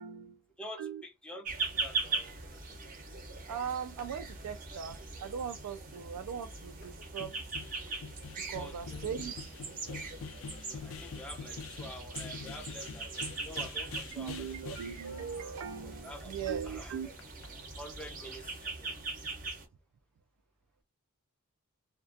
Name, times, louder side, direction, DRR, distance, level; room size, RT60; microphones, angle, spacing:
voice 1, 0.0-0.4 0.8-1.0 3.5-7.3 8.5-9.5 14.1-17.1, right 7 dB, 90° right, 0.3 m, -39 dB
voice 2, 0.6-2.8 8.5-9.0 9.9-14.8 15.8-17.1 17.8-18.9, equal, 5° left, 0.5 m, -48 dB
sound 1, 1.4-19.6, right 3 dB, 40° right, 0.6 m, -41 dB
sound 2, 6.5-6.6 6.8-6.9 7.2-16.8 17.2-17.5, left 6 dB, 60° left, 0.3 m, -46 dB
2.3 x 2.1 x 2.5 m
head